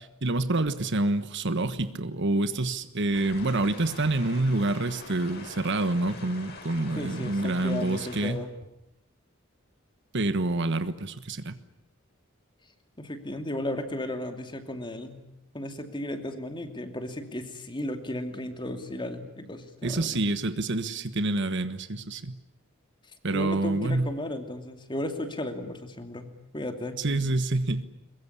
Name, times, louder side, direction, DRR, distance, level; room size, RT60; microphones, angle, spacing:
voice 1, 0.2-8.4 10.1-11.6 19.8-22.4 23.2-24.1 27.0-27.8, right 2 dB, 60° right, 12 dB, 1.4 m, -27 dB
sound 1, 3.1-8.3, left 3 dB, 55° left, 4.9 m, -44 dB
voice 2, 7.0-8.5 13.0-15.2 15.5-20.2 23.3-27.0, left 1 dB, 25° left, 6 dB, 2.7 m, -35 dB
22.5 x 22.0 x 10.0 m, 0.85 s
head